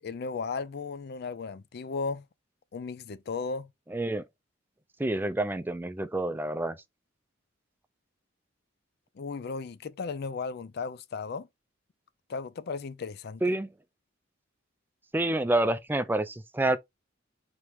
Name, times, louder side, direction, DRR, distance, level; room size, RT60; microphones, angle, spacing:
voice 1, 0.0-2.3 2.7-3.7 9.2-11.5 12.3-13.6, left 4 dB, 55° left, 0.4 m, -35 dB
voice 2, 3.9-4.2 5.0-6.8 13.4-13.7 15.1-16.8, right 2 dB, 10° right, 0.4 m, -28 dB
4.6 x 3.0 x 3.4 m
head